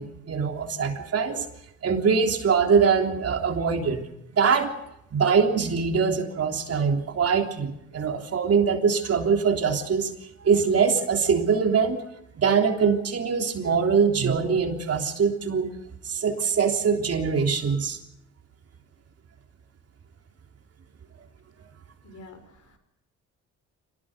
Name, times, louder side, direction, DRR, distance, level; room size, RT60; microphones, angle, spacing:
voice 1, 0.0-1.5 1.8-4.1 4.3-4.7 5.1-10.1 10.4-12.0 12.4-15.7 16.0-18.0, right 6 dB, 50° right, 3 dB, 3.5 m, -23 dB
voice 2, 22.0-22.8, left 2 dB, 65° left, 8 dB, 5.3 m, -48 dB
25.5 x 19.0 x 6.7 m, 0.81 s
cardioid pair, 90°, 30 cm